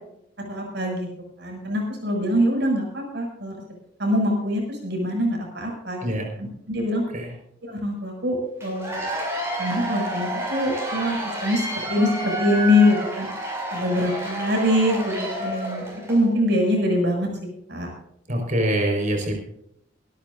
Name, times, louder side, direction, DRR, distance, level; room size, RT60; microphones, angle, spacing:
voice 1, 0.5-1.1 1.4-3.5 4.0-6.0 6.4-7.0 7.7-9.0 9.6-11.2 11.4-13.3 13.7-17.3 17.7-17.9, left 1 dB, 65° right, 1 dB, 7.0 m, -23 dB
Cheering / Applause / Crowd, 8.6-16.2, right 1 dB, 15° right, 6.9 m, -30 dB
voice 2, 18.3-19.3, right 1 dB, 45° right, 2 dB, 4.9 m, -24 dB
24.5 x 12.5 x 2.7 m, 0.74 s
head